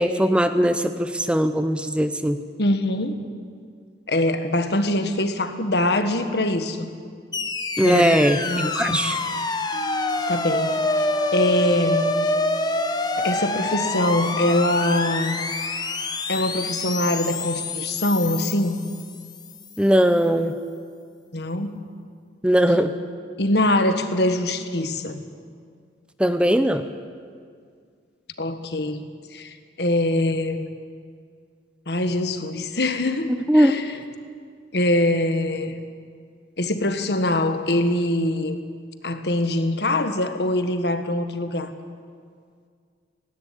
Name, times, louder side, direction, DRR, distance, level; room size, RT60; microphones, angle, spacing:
voice 1, 0.0-2.4 7.8-9.2 19.8-20.5 22.4-22.9 26.2-26.8 33.3-33.7, equal, 5° right, 9 dB, 0.7 m, -19 dB
voice 2, 2.6-3.2 4.1-6.9 7.8-8.2 8.4-9.0 10.3-10.8 11.3-12.1 13.2-15.4 16.3-18.8 21.3-21.8 23.4-25.2 28.4-29.0 29.3-30.7 31.9-34.0 34.7-35.8 36.6-38.6 39.0-41.7, left 1 dB, 65° left, 8 dB, 1.5 m, -23 dB
sound 1, 7.3-19.6, left 2 dB, 20° left, 1.1 m, -26 dB
Mallet percussion, 9.7-15.9, left 2 dB, 45° right, 4.1 m, -43 dB
18.0 x 17.5 x 9.9 m, 2.1 s
head